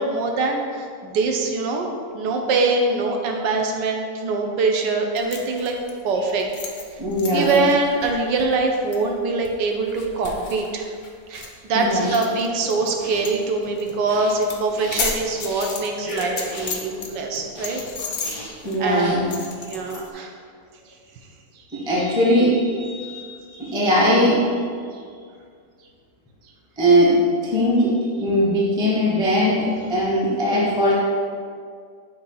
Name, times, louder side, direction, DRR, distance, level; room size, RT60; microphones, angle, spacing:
voice 1, 0.0-5.8 6.0-6.5 7.3-10.9 11.3-17.8 18.8-19.2 19.6-20.3, right 3 dB, 75° right, 2 dB, 1.3 m, -23 dB
sound 1, 5.2-12.9 13.2-13.4 13.6-13.9 14.2-17.1 17.3-20.1, left 4 dB, 75° left, 0.5 m, -33 dB
voice 2, 7.0-7.6 11.7-12.1 18.6-19.3 21.7-24.5 26.8-30.9, equal, 5° right, -6 dB, 0.7 m, -20 dB
sound 2, 11.9-19.8, equal, 45° right, 2.0 m, -38 dB
6.5 x 2.9 x 5.4 m, 2.1 s
omnidirectional pair, 2.0 m